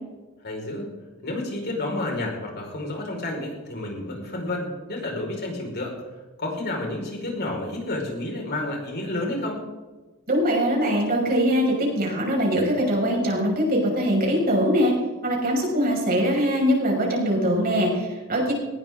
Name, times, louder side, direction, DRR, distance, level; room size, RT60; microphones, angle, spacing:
voice 1, 0.4-0.9 1.2-5.9 6.4-9.6, left 2 dB, 50° left, 0 dB, 5.0 m, -30 dB
voice 2, 10.3-14.9 15.2-18.5, equal, 45° right, -1 dB, 5.9 m, -22 dB
19.5 x 18.0 x 3.7 m, 1.2 s
head